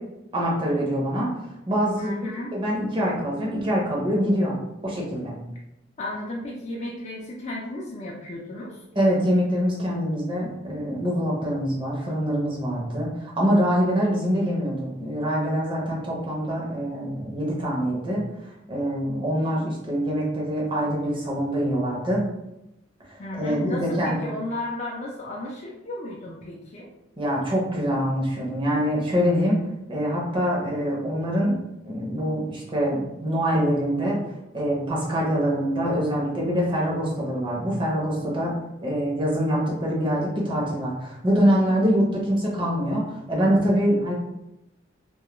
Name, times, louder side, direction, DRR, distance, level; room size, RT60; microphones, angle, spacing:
voice 1, 0.3-1.3 1.7-2.1 2.5-4.5 4.8-5.4 8.9-18.2 18.7-22.2 23.0-24.2 27.2-29.6 29.9-31.6 31.8-34.2 34.5-44.1, equal, 25° right, -4 dB, 0.7 m, -24 dB
voice 2, 2.0-2.5 6.0-8.8 23.2-26.9, left 1 dB, 35° left, -4 dB, 0.3 m, -34 dB
2.2 x 2.1 x 3.0 m, 0.88 s
head